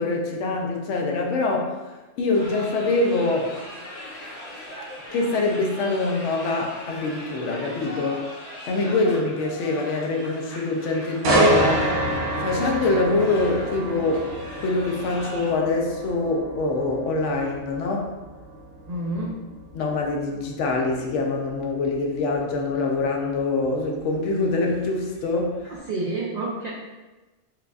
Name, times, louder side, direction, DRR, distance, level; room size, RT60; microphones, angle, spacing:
voice 1, 0.0-1.8 2.2-3.5 5.1-8.2 8.7-12.0 12.4-14.3 14.6-18.1 19.7-25.7, left 3 dB, 85° left, 2 dB, 0.9 m, -24 dB
sound 1, 2.3-15.5, equal, 40° left, 0.7 m, -40 dB
sound 2, 11.2-25.1 25.5-25.8, right 1 dB, 85° right, 1.0 m, -28 dB
voice 2, 18.9-19.4 25.7-26.7, right 2 dB, 60° right, -4 dB, 0.4 m, -29 dB
4.6 x 2.4 x 2.3 m, 1.2 s
omnidirectional pair, 1.2 m